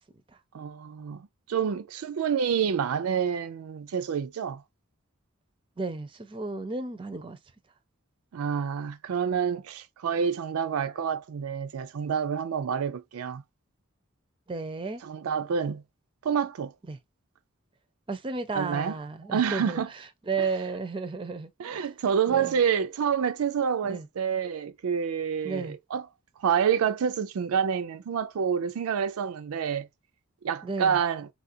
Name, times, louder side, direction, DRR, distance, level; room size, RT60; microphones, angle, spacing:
voice 1, 0.5-4.6 8.3-13.4 15.0-15.8 16.2-16.7 18.5-18.9 19.3-19.9 20.4-20.5 21.6-26.1 26.4-29.9 30.4-31.3, right 7 dB, 80° right, 0.4 m, -28 dB
voice 2, 5.8-7.4 14.5-15.0 16.9-17.0 18.1-19.8 20.3-21.8 22.3-22.6 23.8-24.1 25.4-25.8 30.6-31.0, right 4 dB, 25° right, 0.5 m, -33 dB
4.0 x 2.4 x 2.6 m
head